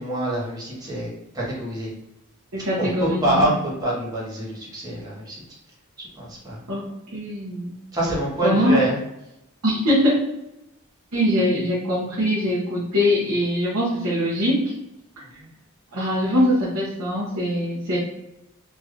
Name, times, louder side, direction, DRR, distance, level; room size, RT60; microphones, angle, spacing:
voice 1, 0.0-1.9 2.8-5.4 6.2-6.6 7.9-9.0 15.4-15.5, right 1 dB, 15° right, -6 dB, 1.1 m, -25 dB
voice 2, 2.5-3.3 6.7-7.8 8.4-8.8 9.6-10.2 11.1-14.7 15.9-18.0, equal, 75° right, -7 dB, 0.9 m, -22 dB
3.2 x 2.8 x 2.4 m, 0.86 s
head